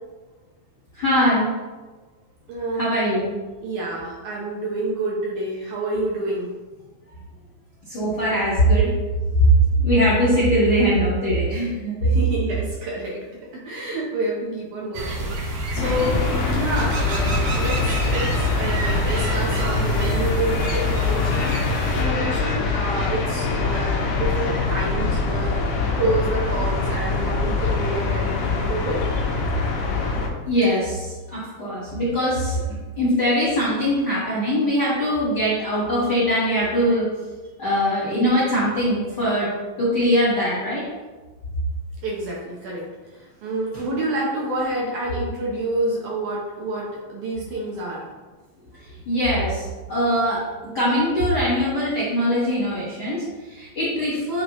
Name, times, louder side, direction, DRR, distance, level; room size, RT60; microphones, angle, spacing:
voice 1, 1.0-1.5 2.7-3.2 7.9-8.9 9.4-9.5 9.8-11.9 30.5-37.1 37.6-39.5 39.8-40.8 49.0-54.4, equal, 45° left, -9 dB, 1.4 m, -21 dB
voice 2, 2.5-2.9 3.6-6.5 12.0-13.2 13.5-21.5 21.9-29.0 31.9-32.0 42.0-48.0, right 1 dB, 70° right, -4 dB, 2.1 m, -28 dB
sound 1, 14.9-22.0, right 1 dB, 90° right, 1.2 m, -28 dB
sound 2, 15.8-30.3, left 4 dB, 80° left, 2.5 m, -24 dB
9.3 x 3.4 x 3.0 m, 1.3 s
omnidirectional pair, 4.2 m